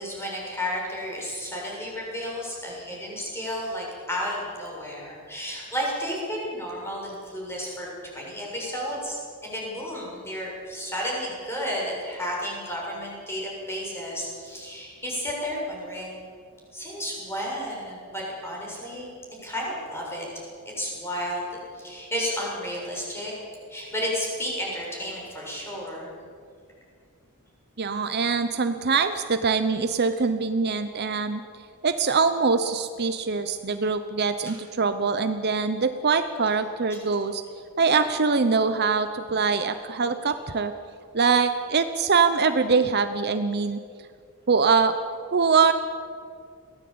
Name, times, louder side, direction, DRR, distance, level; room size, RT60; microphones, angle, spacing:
voice 1, 0.0-16.2 16.7-19.1 19.4-20.3 20.8-23.3 23.7-26.1 34.4-34.6 36.9-37.0, equal, 10° left, -3 dB, 7.1 m, -32 dB
voice 2, 27.8-31.4 31.8-37.4 37.8-40.7 41.1-43.8 44.5-45.0 45.3-45.7, right 5 dB, 50° right, 9 dB, 0.9 m, -23 dB
22.5 x 17.0 x 8.7 m, 2.2 s
head